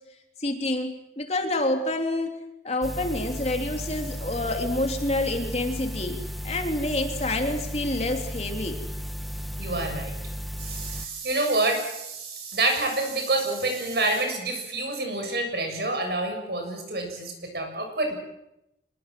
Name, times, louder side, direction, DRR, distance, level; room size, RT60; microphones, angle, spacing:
voice 1, 0.4-2.3 2.6-6.2 6.4-8.8, left 2 dB, 35° left, 4 dB, 3.2 m, -28 dB
sound 1, 2.8-11.1, equal, ahead, 1.4 m, -34 dB
voice 2, 9.6-10.1 10.6-18.1, right 2 dB, 65° right, 4 dB, 7.2 m, -27 dB
26.0 x 21.5 x 7.7 m, 0.87 s
head